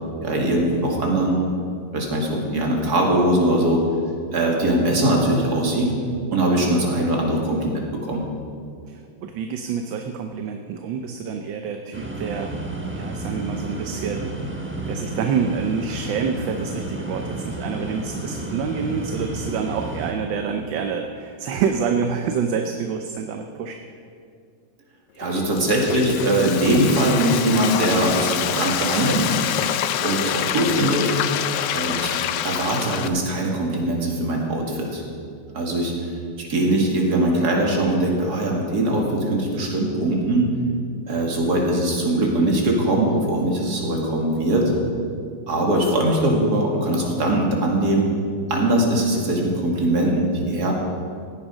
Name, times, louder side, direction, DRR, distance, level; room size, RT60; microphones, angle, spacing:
voice 1, 0.2-1.4 1.9-3.8 4.3-5.9 6.3-8.2 25.2-29.4 30.0-31.1 31.7-32.2 32.4-35.0 35.5-35.9 36.5-40.4 41.1-44.7 45.5-48.1 48.5-50.7, right 1 dB, 45° right, -1 dB, 2.6 m, -21 dB
voice 2, 8.9-12.5 12.8-14.4 14.9-23.8, right 6 dB, 70° right, 5 dB, 1.3 m, -27 dB
sound 1, 11.9-20.1, right 2 dB, 10° right, 0.7 m, -31 dB
Frying (food), 25.2-33.1, left 10 dB, 70° left, 1.1 m, -26 dB
16.0 x 10.0 x 5.1 m, 2.3 s
omnidirectional pair, 2.3 m